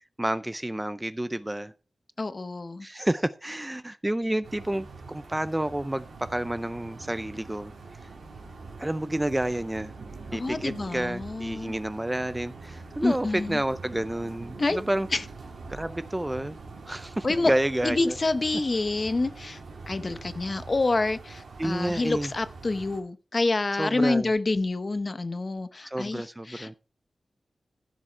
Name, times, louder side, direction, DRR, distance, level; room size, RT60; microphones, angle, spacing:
voice 1, 0.2-1.7 2.8-7.7 8.8-9.9 10.3-15.1 15.7-16.6 16.9-18.2 21.6-22.3 23.8-24.3 25.8-26.7, right 1 dB, 15° right, 0.4 m, -30 dB
voice 2, 2.2-2.9 10.3-11.7 13.0-13.6 14.6-14.8 15.1-15.2 17.2-17.5 17.8-19.6 19.9-26.8, left 2 dB, 35° left, 0.8 m, -27 dB
sound 1, 4.4-23.0, right 4 dB, 90° right, 3.1 m, -44 dB
15.0 x 6.2 x 4.4 m
wide cardioid pair, 110°, 0 cm